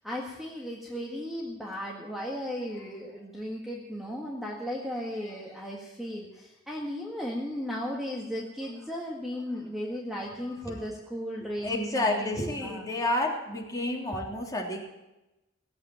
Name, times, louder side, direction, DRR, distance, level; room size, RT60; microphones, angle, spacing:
voice 1, 0.0-12.9, equal, ahead, -3 dB, 1.7 m, -36 dB
voice 2, 11.4-14.8, left 2 dB, 20° left, -2 dB, 3.3 m, -30 dB
17.5 x 8.2 x 9.1 m, 0.97 s
head